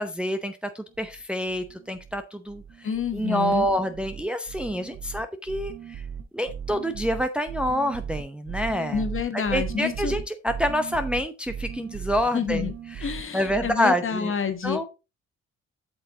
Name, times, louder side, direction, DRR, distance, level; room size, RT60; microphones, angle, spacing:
voice 1, 0.0-2.9 3.1-6.0 6.3-9.0 9.3-12.7 13.0-14.3 14.6-14.9, equal, 5° right, 7 dB, 0.7 m, -27 dB
sound 1, 0.9-1.2 1.5-2.2 2.5-3.2 3.5-13.7, right 7 dB, 65° right, 1.3 m, -36 dB
voice 2, 2.8-3.7 8.9-10.1 12.3-12.7 13.0-14.9, left 7 dB, 45° left, 8 dB, 1.5 m, -28 dB
7.9 x 5.8 x 3.8 m, 0.29 s
cardioid pair, 90°, 30 cm